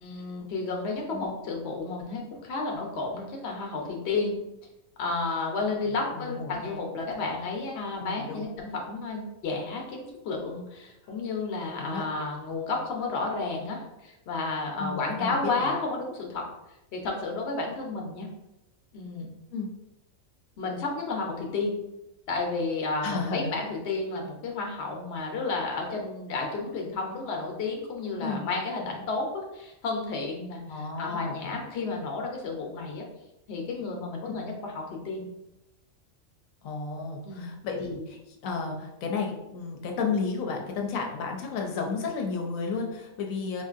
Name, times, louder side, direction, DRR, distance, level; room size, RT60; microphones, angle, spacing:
voice 1, 0.0-4.4 5.0-16.5 16.9-18.3 18.9-19.3 20.6-21.8 22.3-33.0 33.5-35.3 37.2-37.5, left 3 dB, 60° left, 1 dB, 0.9 m, -32 dB
voice 2, 6.1-6.8 8.0-8.4 11.7-12.0 14.8-15.7 19.5-19.7 23.0-23.5 28.2-28.5 30.7-31.6 36.6-43.6, left 4 dB, 85° left, 2 dB, 1.0 m, -33 dB
4.5 x 2.6 x 2.4 m, 0.91 s
omnidirectional pair, 1.4 m